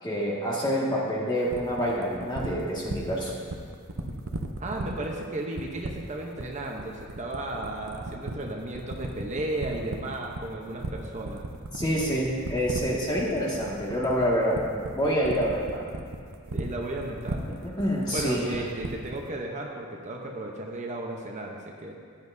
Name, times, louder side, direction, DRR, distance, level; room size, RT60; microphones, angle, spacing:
voice 1, 0.0-3.4 11.7-15.9 17.8-18.5, equal, 20° left, -5 dB, 1.8 m, -27 dB
sound 1, 1.5-19.3, right 2 dB, 80° right, 0.7 m, -35 dB
voice 2, 4.6-11.5 16.5-17.4 18.1-21.9, right 2 dB, 35° right, 0 dB, 0.8 m, -34 dB
14.5 x 10.5 x 2.7 m, 2.2 s
head